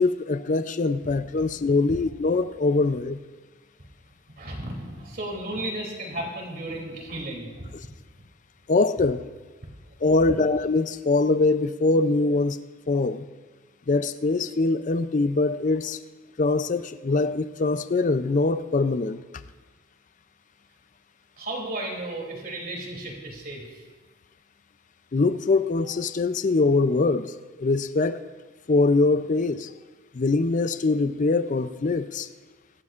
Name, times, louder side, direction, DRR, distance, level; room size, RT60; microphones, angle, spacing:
voice 1, 0.0-3.2 7.7-7.8 8.7-9.2 10.0-12.6 12.9-13.3 13.9-16.0 16.4-19.2 25.1-27.3 27.6-28.2 28.7-29.7 30.1-32.3, left 3 dB, 35° left, 13 dB, 0.4 m, -23 dB
voice 2, 4.4-7.6 21.4-23.6, right 1 dB, 45° right, -1 dB, 2.9 m, -34 dB
25.0 x 12.0 x 2.5 m, 1.4 s
head